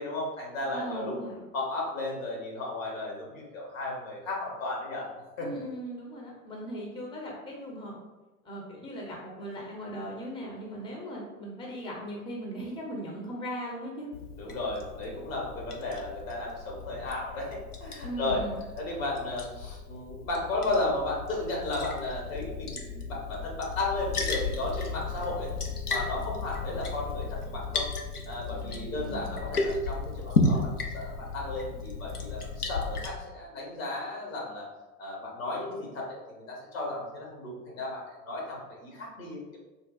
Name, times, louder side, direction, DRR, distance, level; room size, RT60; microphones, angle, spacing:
voice 1, 0.0-1.1 1.5-5.1 5.4-5.5 14.4-25.5 25.9-27.9 28.3-34.7 35.0-39.6, left 2 dB, 60° left, -2 dB, 1.5 m, -34 dB
voice 2, 0.7-1.4 5.4-8.0 8.4-14.1 18.0-18.6 28.6-29.4, equal, 10° left, -2 dB, 0.7 m, -38 dB
Liquid, 14.1-33.1, left 3 dB, 85° left, 0.6 m, -34 dB
3.7 x 2.2 x 3.9 m, 1.1 s
figure-of-eight pair, 80°, 44 cm